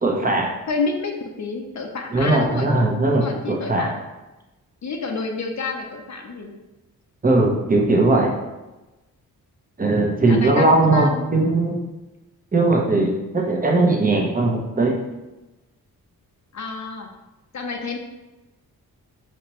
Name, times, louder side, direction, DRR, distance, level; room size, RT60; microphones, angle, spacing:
voice 1, 0.0-0.5 2.1-3.9 7.2-8.3 9.8-11.8 12.5-14.9, right 2 dB, 20° right, 0 dB, 0.9 m, -19 dB
voice 2, 0.7-1.1 1.4-2.7 3.1-4.0 4.8-6.5 10.3-11.3 16.5-17.1 17.5-18.0, left 4 dB, 45° left, 2 dB, 0.6 m, -29 dB
4.1 x 2.9 x 3.1 m, 1.0 s
supercardioid pair, 50°, 38 cm